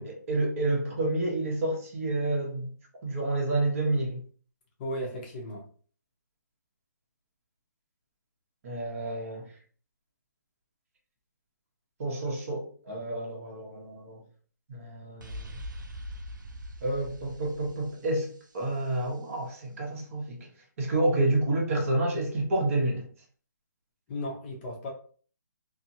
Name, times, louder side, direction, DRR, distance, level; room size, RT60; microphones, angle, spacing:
voice 1, 0.0-2.7 3.0-4.2 8.6-9.5 12.0-14.2 14.7-15.5 16.8-18.3 18.5-20.5 20.8-23.1, right 2 dB, 45° right, 1.1 m, -29 dB
voice 2, 4.8-5.6 24.1-24.9, left 1 dB, 30° left, 0.7 m, -35 dB
sound 1, 15.2-19.0, equal, 85° right, 0.6 m, -42 dB
2.7 x 2.6 x 2.8 m
hypercardioid pair, 155°, 10 cm